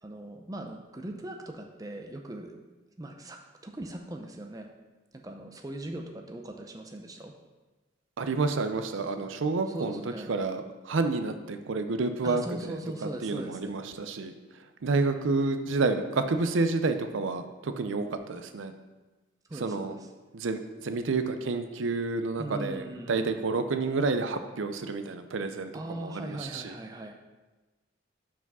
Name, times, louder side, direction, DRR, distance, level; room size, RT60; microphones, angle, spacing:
voice 1, 0.0-2.6 3.0-4.7 5.1-7.3 9.7-10.3 12.2-13.7 19.5-20.1 22.4-23.4 25.7-27.1, right 1 dB, 20° right, 3 dB, 0.5 m, -40 dB
voice 2, 8.2-10.0 10.3-14.3 14.8-18.7 19.6-19.9 20.3-26.8, right 3 dB, 80° right, 9 dB, 0.5 m, -29 dB
5.9 x 4.9 x 5.4 m, 1.2 s
head